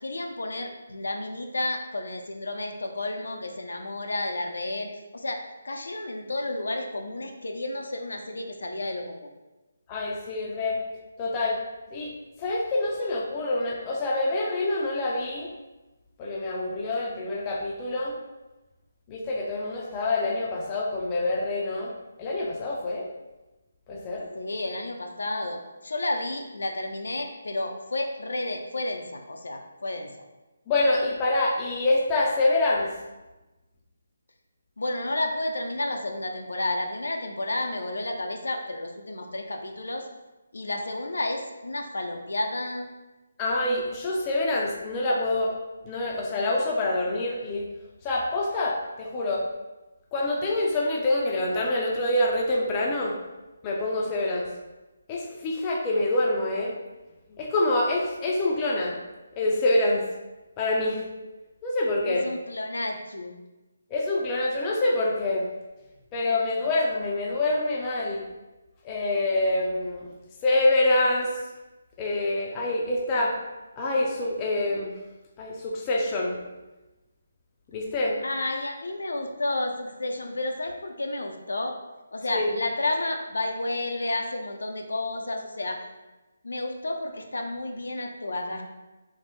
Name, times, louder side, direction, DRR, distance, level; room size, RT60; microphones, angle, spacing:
voice 1, 0.0-9.3 24.3-30.1 34.8-40.1 40.5-42.9 62.0-63.3 78.2-81.8 82.1-85.8 86.4-88.6, left 2 dB, 85° left, 3 dB, 0.4 m, -31 dB
voice 2, 9.9-10.8 11.2-11.6 11.9-12.1 12.4-15.5 16.2-18.1 19.1-21.9 22.2-23.1 23.9-24.3 30.7-32.9 43.4-45.5 45.8-47.7 48.0-49.4 50.1-53.1 53.6-54.5 55.1-56.7 57.4-58.9 59.4-60.0 60.6-61.0 61.6-62.2 63.9-65.5 66.1-68.3 68.8-70.1 70.4-71.3 72.0-73.4 73.8-74.9 75.4-76.4 77.7-78.2 82.3-82.5, left 2 dB, 20° left, -2 dB, 0.4 m, -26 dB
3.2 x 2.0 x 3.0 m, 1.1 s
hypercardioid pair, 160°, 0 cm